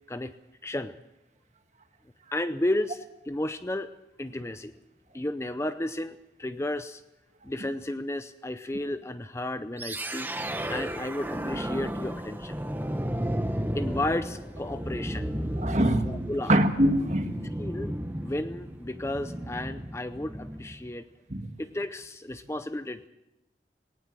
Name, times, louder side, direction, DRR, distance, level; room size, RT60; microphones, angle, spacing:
voice 1, 0.6-0.9 2.3-3.9 4.2-4.7 5.1-7.0 7.4-10.3 10.7-12.6 13.7-15.5 16.1-16.5 17.6-17.9 18.2-21.0 21.6-23.1, left 1 dB, 15° left, 11 dB, 0.6 m, -33 dB
sound 1, 9.8-20.9, equal, 10° right, 1.0 m, -33 dB
voice 2, 15.6-16.2 16.5-17.5 21.3-21.6, right 1 dB, 40° right, 7 dB, 1.7 m, -24 dB
19.0 x 18.0 x 7.5 m, 0.93 s
head